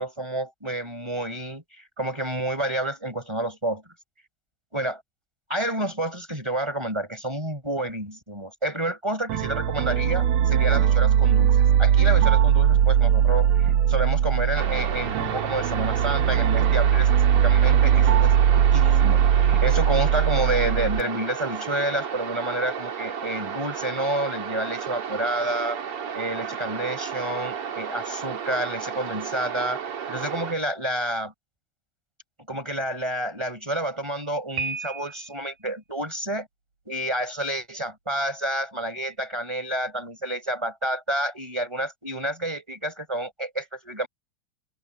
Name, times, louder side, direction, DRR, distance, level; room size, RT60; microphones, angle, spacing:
voice 1, 0.0-3.8 4.7-5.0 5.5-25.8 26.1-29.8 30.1-31.3 32.5-36.5 36.9-44.1, right 1 dB, 10° right, 4.2 m, -29 dB
sound 1, 9.3-21.0, right 9 dB, 90° right, 1.1 m, -20 dB
sound 2, 14.5-30.5, right 7 dB, 50° right, 2.5 m, -33 dB
Piano, 34.6-35.5, right 5 dB, 65° right, 9.1 m, -33 dB
open air
omnidirectional pair, 3.6 m